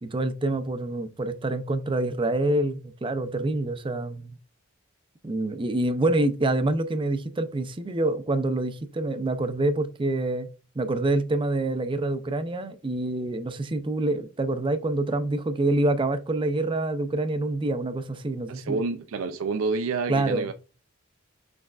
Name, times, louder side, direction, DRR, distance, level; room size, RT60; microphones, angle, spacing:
voice 1, 0.0-4.4 5.2-10.5 10.8-18.8 20.1-20.5, right 2 dB, 25° right, 0.5 m, -26 dB
voice 2, 18.5-20.5, right 4 dB, 75° right, 0.4 m, -28 dB
6.4 x 3.4 x 2.4 m
head